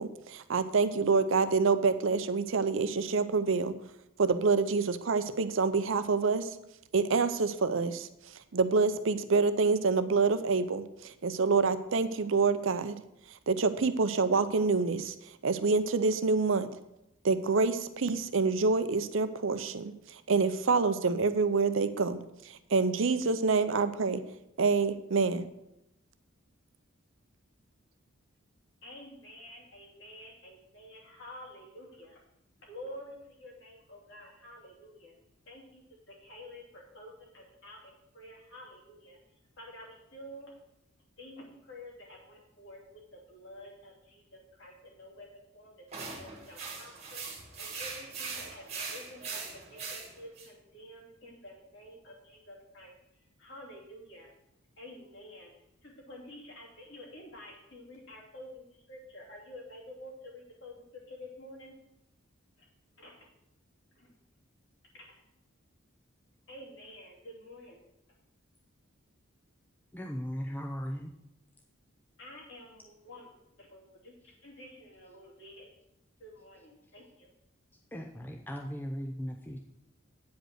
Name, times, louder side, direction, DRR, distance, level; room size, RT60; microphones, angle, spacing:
voice 1, 0.0-3.7 4.2-6.5 6.9-8.1 8.5-13.0 13.5-15.1 15.4-16.7 17.2-24.2 24.6-25.5, right 4 dB, 65° right, 11 dB, 0.6 m, -27 dB
voice 2, 28.8-32.2 32.6-35.1 35.5-35.8 36.1-39.2 39.6-40.5 41.2-42.8 43.1-44.2 44.6-45.3 45.5-48.6 48.9-52.9 53.4-54.3 54.8-55.5 55.8-60.7 61.1-61.7 63.0-63.2 64.0-64.1 64.9-65.0 66.5-67.8 72.2-73.3 73.6-75.7 76.2-77.3, left 1 dB, 60° left, -3 dB, 2.8 m, -49 dB
sound 1, 45.9-50.5, right 4 dB, 30° right, 1.6 m, -41 dB
voice 3, 69.9-71.1 77.9-79.6, equal, 10° left, 1 dB, 0.5 m, -37 dB
9.1 x 5.1 x 6.4 m, 0.85 s
head